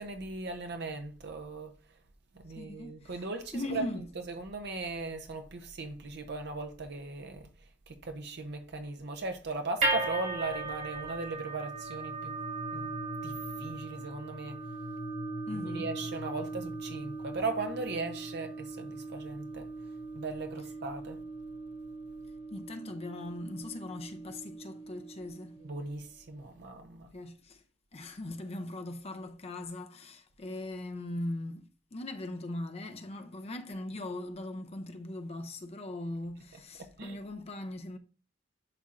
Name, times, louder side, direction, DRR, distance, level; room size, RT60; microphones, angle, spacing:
voice 1, 0.0-1.8 2.3-3.8 4.3-7.5 7.9-12.3 12.7-12.9 13.2-14.6 15.5-19.7 20.1-21.2 25.6-27.1 36.8-37.2, right 3 dB, 60° right, 0.7 m, -38 dB
voice 2, 2.6-3.2 3.5-4.1 15.5-15.9 22.5-25.6 27.1-27.6 27.9-38.0, left 1 dB, 35° left, 0.6 m, -40 dB
sound 1, 9.8-26.0, right 2 dB, 45° right, 1.6 m, -38 dB
11.0 x 4.2 x 2.5 m
head